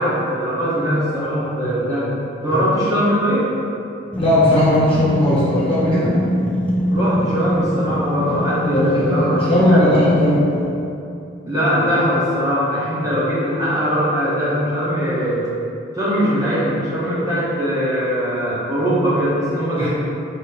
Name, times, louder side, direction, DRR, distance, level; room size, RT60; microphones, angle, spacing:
voice 1, 0.0-2.1 2.4-3.5 6.9-10.0 11.5-15.5 16.0-19.9, equal, 15° right, -10 dB, 0.7 m, -21 dB
sound 1, 4.1-10.9, left 1 dB, 5° left, 0.3 m, -24 dB
voice 2, 4.2-6.1 8.3-8.4 8.7-10.4 19.8-19.9, left 1 dB, 30° left, -9 dB, 1.1 m, -17 dB
4.1 x 2.6 x 3.7 m, 2.7 s
head